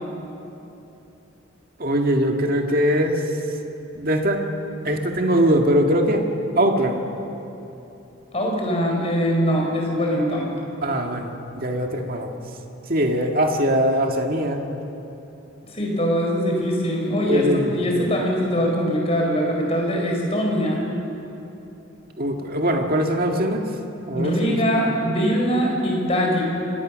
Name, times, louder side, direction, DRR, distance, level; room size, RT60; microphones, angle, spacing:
voice 1, 1.8-3.2 3.9-4.5 4.8-6.3 6.6-7.0 10.1-10.3 10.8-12.4 12.9-14.6 17.2-18.0 22.2-23.7 24.1-24.6, equal, 45° right, 3 dB, 1.9 m, -21 dB
voice 2, 8.3-10.4 15.7-20.8 24.2-26.4, equal, 30° left, -1 dB, 4.6 m, -22 dB
25.5 x 18.0 x 6.4 m, 2.9 s
head